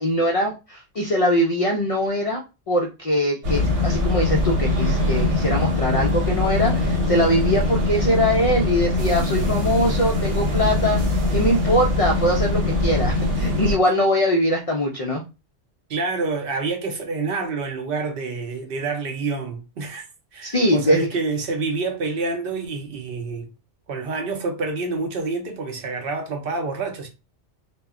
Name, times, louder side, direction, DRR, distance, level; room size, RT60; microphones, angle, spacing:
voice 1, 0.0-2.4 2.7-11.0 11.3-15.2 20.4-21.1, equal, 60° left, 0.3 m, -22 dB
sound 1, 3.4-13.8, left 2 dB, 85° right, 1.1 m, -22 dB
voice 2, 15.9-20.0 20.3-23.5 23.9-27.1, right 3 dB, 65° right, 0.7 m, -27 dB
2.2 x 2.1 x 3.5 m
omnidirectional pair, 1.2 m